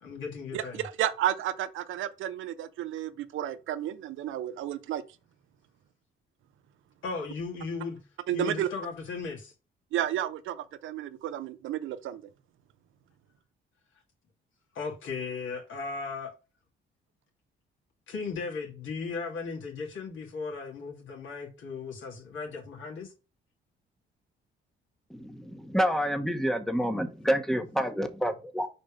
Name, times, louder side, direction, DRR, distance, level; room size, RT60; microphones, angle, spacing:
voice 1, 0.0-0.8 7.0-8.0 8.3-9.5 14.7-16.3 18.1-23.1, left 4 dB, 75° left, 2.5 m, -36 dB
voice 2, 0.5-5.0 8.3-8.7 9.9-12.2, right 11 dB, 80° right, 0.7 m, -32 dB
voice 3, 25.1-28.7, equal, ahead, 1.0 m, -28 dB
5.2 x 4.3 x 5.1 m
cardioid pair, 90°, 20 cm